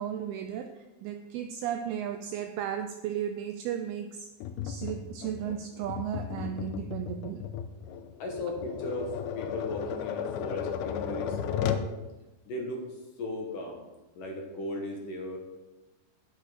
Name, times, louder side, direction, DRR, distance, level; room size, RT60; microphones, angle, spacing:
voice 1, 0.0-4.3 4.6-7.5, right 9 dB, 85° right, 7 dB, 2.2 m, -35 dB
Tap, 4.4-11.9, left 8 dB, 80° left, 2.5 m, -35 dB
voice 2, 8.2-11.9 12.5-12.8 13.2-13.8 14.2-15.4, left 1 dB, 60° left, 1 dB, 2.5 m, -36 dB
10.0 x 10.0 x 5.0 m, 1.1 s
omnidirectional pair, 5.0 m